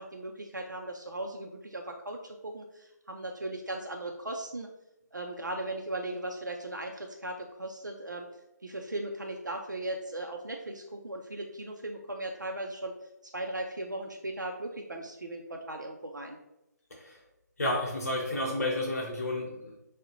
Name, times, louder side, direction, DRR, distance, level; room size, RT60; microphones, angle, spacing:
voice 1, 0.0-4.7 5.1-8.3 8.6-16.4, right 1 dB, 90° right, 2 dB, 0.4 m, -38 dB
voice 2, 17.6-19.8, left 1 dB, 55° left, -2 dB, 0.7 m, -31 dB
6.0 x 2.1 x 2.5 m, 0.92 s
figure-of-eight pair, 145°, 10 cm